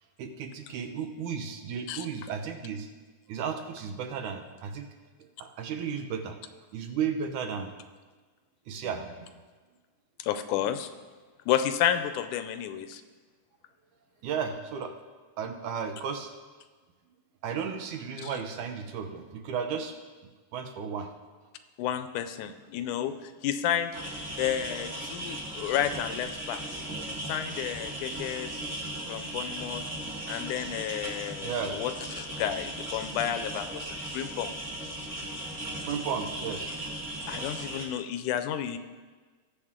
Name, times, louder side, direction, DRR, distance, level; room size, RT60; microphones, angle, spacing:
voice 1, 0.2-2.9 3.3-4.9 5.4-6.4 6.7-7.7 8.7-9.3 14.2-14.9 15.4-16.3 17.4-20.0 20.5-21.1 31.4-31.8 35.8-37.3 37.7-38.0, right 6 dB, 80° right, 6 dB, 2.5 m, -34 dB
voice 2, 10.2-10.9 11.5-13.0 18.2-18.3 21.8-23.9 24.4-26.8 27.2-28.6 29.1-29.8 30.3-34.5 37.3-38.8, left 10 dB, 85° left, 10 dB, 2.2 m, -31 dB
sound 1, 23.9-37.8, right 1 dB, 25° right, 1.9 m, -37 dB
19.5 x 7.4 x 3.7 m, 1.4 s
omnidirectional pair, 3.5 m